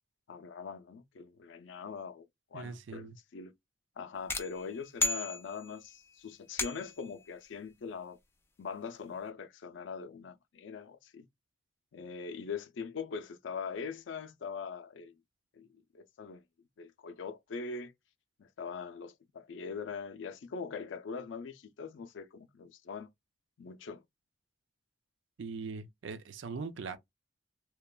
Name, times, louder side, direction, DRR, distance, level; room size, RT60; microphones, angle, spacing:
voice 1, 0.3-3.1 3.3-3.5 4.0-8.2 8.6-11.3 11.9-15.1 15.5-15.7 15.9-16.4 16.8-17.9 18.4-23.1 23.6-24.0 26.9-27.0, left 5 dB, 85° left, 0.4 m, -42 dB
voice 2, 2.5-3.2 25.4-27.0, right 4 dB, 85° right, 0.5 m, -41 dB
sound 1, 4.3-5.9 6.6-7.1, left 2 dB, 15° left, 0.4 m, -34 dB
2.9 x 2.2 x 2.2 m
head